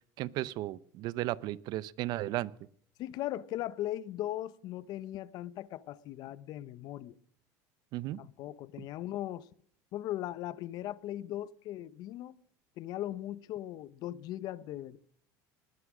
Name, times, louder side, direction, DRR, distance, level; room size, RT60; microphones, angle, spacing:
voice 1, 0.2-2.5 7.9-8.2 8.8-8.9, right 16 dB, 55° right, 0.6 m, -35 dB
voice 2, 3.0-7.2 8.2-9.5 9.9-12.4 12.8-15.0, left 13 dB, 55° left, 0.7 m, -38 dB
20.0 x 9.9 x 6.1 m
supercardioid pair, 130°, 8 cm